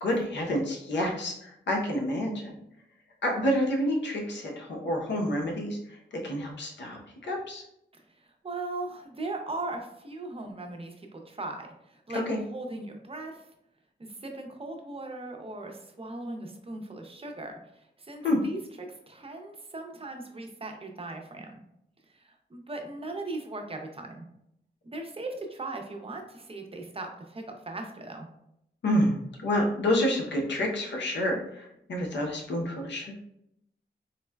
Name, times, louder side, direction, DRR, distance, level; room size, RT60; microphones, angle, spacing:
voice 1, 0.0-2.5 3.2-7.6 12.3-12.4 18.2-18.4 28.8-29.1 29.4-33.2, left 1 dB, 80° left, 0 dB, 0.7 m, -28 dB
voice 2, 7.9-13.5 14.0-21.6 22.1-24.3 24.8-28.3, right 2 dB, 30° right, 3 dB, 0.6 m, -39 dB
3.9 x 2.1 x 2.2 m, 0.78 s
cardioid pair, 55°, 18 cm